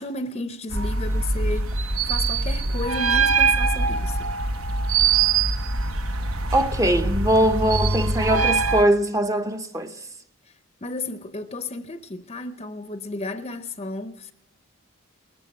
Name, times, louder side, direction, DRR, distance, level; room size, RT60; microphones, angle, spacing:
voice 1, 0.0-1.7 2.1-4.3 10.5-10.6 10.8-14.3, left 2 dB, 25° left, 0.7 m, -33 dB
sound 1, 0.7-8.8, right 4 dB, 70° right, 1.1 m, -23 dB
voice 2, 6.5-9.9, right 1 dB, 15° right, 0.7 m, -21 dB
20.0 x 14.0 x 9.4 m
head